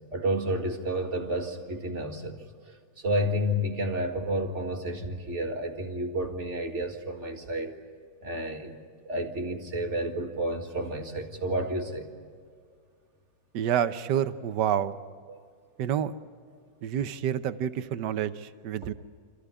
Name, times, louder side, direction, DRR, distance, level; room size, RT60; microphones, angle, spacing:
voice 1, 0.1-7.8 8.2-8.8 9.1-12.1 15.3-15.4 18.8-18.9, right 1 dB, 35° right, 3 dB, 2.1 m, -31 dB
voice 2, 13.5-15.0 15.8-16.1 16.8-18.9, right 9 dB, 65° right, 12 dB, 1.3 m, -28 dB
27.0 x 15.0 x 9.8 m, 2.1 s
omnidirectional pair, 2.3 m